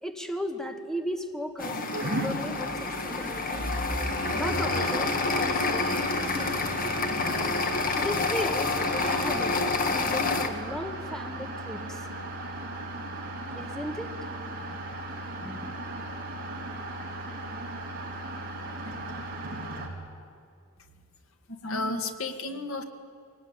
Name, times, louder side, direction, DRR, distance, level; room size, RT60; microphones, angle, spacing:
voice 1, 0.0-3.7 4.3-6.7 7.2-7.6 8.0-9.6 9.9-12.1 13.5-14.1 14.6-14.8 15.4-15.8, equal, ahead, 5 dB, 1.3 m, -36 dB
sound 1, 1.6-10.5, left 3 dB, 45° left, 1.8 m, -28 dB
sound 2, 1.9-19.9, right 1 dB, 45° right, 4.2 m, -36 dB
voice 2, 21.5-22.8, left 2 dB, 70° left, 6 dB, 1.8 m, -32 dB
23.0 x 19.0 x 9.8 m, 2.4 s
head